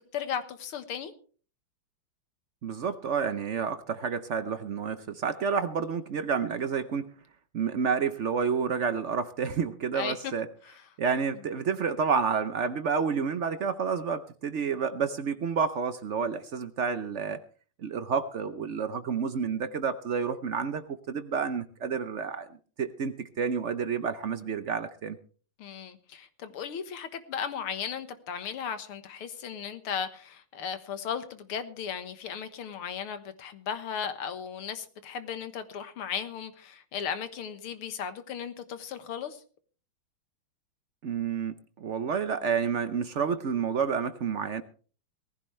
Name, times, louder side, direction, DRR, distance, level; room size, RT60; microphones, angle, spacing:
voice 1, 0.1-1.1 9.9-10.3 25.6-39.4, left 7 dB, 90° left, 10 dB, 2.2 m, -36 dB
voice 2, 2.6-7.1 7.5-10.5 11.0-17.4 17.8-22.5 22.8-25.2 41.0-44.6, right 6 dB, 75° right, 11 dB, 0.6 m, -29 dB
19.0 x 15.5 x 3.3 m, 0.41 s
omnidirectional pair, 2.3 m